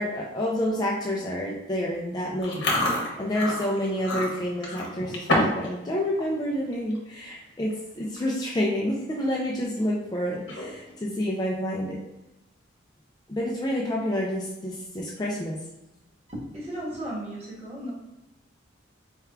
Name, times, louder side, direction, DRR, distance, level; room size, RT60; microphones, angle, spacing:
voice 1, 0.0-2.7 3.2-12.0 13.3-15.6, equal, 20° left, -3 dB, 0.4 m, -28 dB
Chewing mastication, 2.4-5.7 6.0-6.3 6.7-7.0 7.7-7.8 8.0-8.4 8.8-8.9 10.3-10.9, left 1 dB, 65° left, 0.9 m, -28 dB
voice 2, 16.3-17.9, right 1 dB, 30° right, -6 dB, 1.3 m, -35 dB
4.4 x 3.5 x 2.3 m, 0.96 s
head